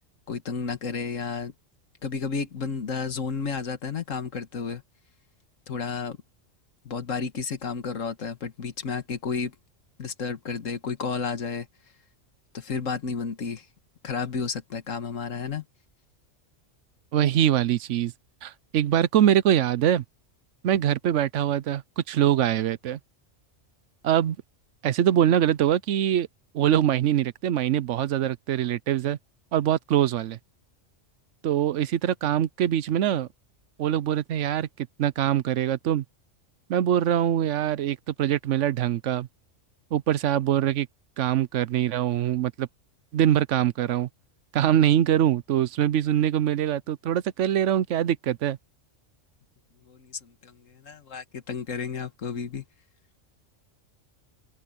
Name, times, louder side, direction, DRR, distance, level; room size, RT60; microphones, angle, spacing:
voice 1, 0.3-1.5 2.0-4.8 5.7-6.2 6.9-9.6 10.0-11.7 12.5-13.7 14.0-15.6 49.9-52.6, left 5 dB, 85° left, 1.8 m, -32 dB
voice 2, 17.1-18.1 18.4-20.0 20.6-23.0 24.0-24.4 24.8-26.3 26.5-29.2 29.5-30.4 31.4-33.3 33.8-34.7 35.0-36.0 36.7-39.3 39.9-40.9 41.2-42.7 43.1-44.1 44.5-48.6, right 11 dB, 70° right, 1.0 m, -23 dB
open air
omnidirectional pair, 1.3 m